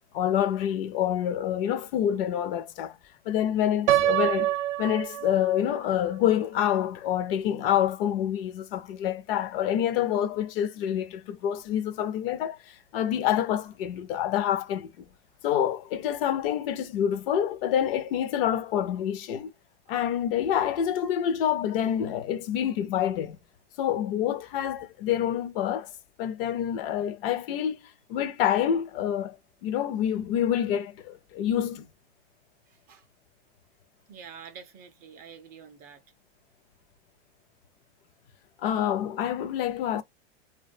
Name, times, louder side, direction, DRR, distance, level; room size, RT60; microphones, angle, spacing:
voice 1, 0.1-3.0 3.3-4.5 4.8-14.9 15.4-19.5 19.9-23.4 23.8-25.9 26.2-27.8 28.1-31.9 38.6-40.0, left 10 dB, 55° left, 0.5 m, -27 dB
Piano, 3.9-5.8, right 13 dB, 80° right, 0.5 m, -26 dB
voice 2, 34.1-36.0, right 7 dB, 25° right, 0.4 m, -46 dB
2.4 x 2.3 x 2.5 m
supercardioid pair, 135°, 35 cm